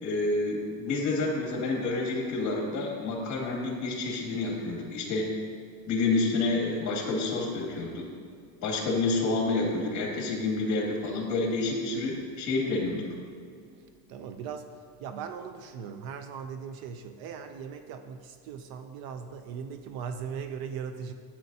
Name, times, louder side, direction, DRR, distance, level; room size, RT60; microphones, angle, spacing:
voice 1, 0.0-5.3 5.9-8.1 8.6-13.0, left 3 dB, 35° left, -1 dB, 2.2 m, -29 dB
voice 2, 14.1-21.1, right 6 dB, 50° right, 8 dB, 0.5 m, -39 dB
12.0 x 8.8 x 2.7 m, 2.2 s
cardioid pair, 155°, 47 cm